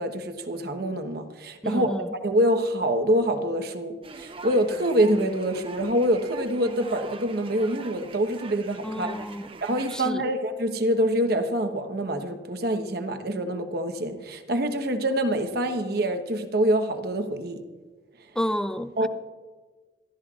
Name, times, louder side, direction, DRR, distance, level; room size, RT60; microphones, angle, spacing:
voice 1, 0.0-1.9 2.2-9.1 9.6-17.6 19.0-19.1, right 1 dB, 60° right, 1.1 m, -25 dB
voice 2, 1.6-2.1 8.8-9.5 9.9-10.2 18.4-19.1, equal, 5° left, 0.4 m, -30 dB
sound 1, 4.0-10.1, right 3 dB, 30° right, 0.7 m, -43 dB
26.0 x 13.0 x 2.4 m
head